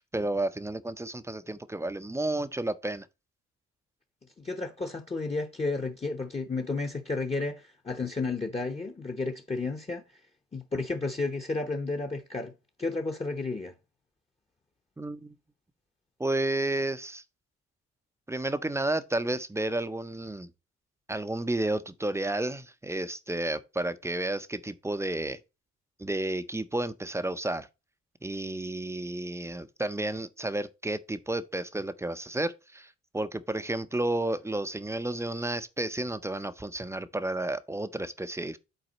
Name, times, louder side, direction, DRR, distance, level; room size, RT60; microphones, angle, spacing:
voice 1, 0.1-3.1 15.0-15.4 16.2-17.2 18.3-20.5 21.1-25.4 26.0-27.7 28.2-38.6, right 2 dB, 10° right, 0.5 m, -31 dB
voice 2, 4.4-10.0 10.5-12.5 12.8-13.7, left 3 dB, 20° left, 0.8 m, -32 dB
7.9 x 4.2 x 4.0 m
cardioid pair, 90°, 30 cm